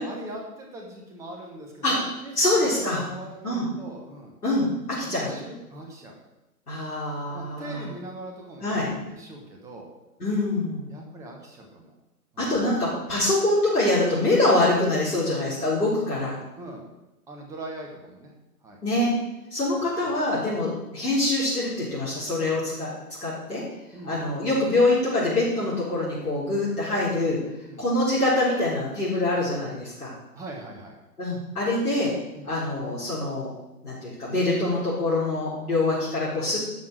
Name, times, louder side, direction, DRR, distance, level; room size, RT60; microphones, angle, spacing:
voice 1, 0.0-2.8 3.0-4.3 5.0-6.1 7.3-9.9 10.9-11.9 12.3-12.5 16.6-16.9 17.3-18.3 18.6-18.8 19.8-19.9 23.9-24.2 27.7-27.9 30.3-30.9 32.3-32.5, right 1 dB, 5° right, 1 dB, 1.1 m, -41 dB
voice 2, 2.3-3.0 3.4-3.7 4.4-5.4 6.7-7.9 8.6-8.9 10.2-10.9 12.4-16.3 18.8-19.1 19.5-22.9 23.2-23.6 24.0-27.4 27.8-30.1 31.2-32.1 32.4-33.5 33.8-36.6, left 2 dB, 65° left, -8 dB, 4.4 m, -24 dB
12.0 x 5.9 x 6.1 m, 0.97 s
figure-of-eight pair, 130°, 47 cm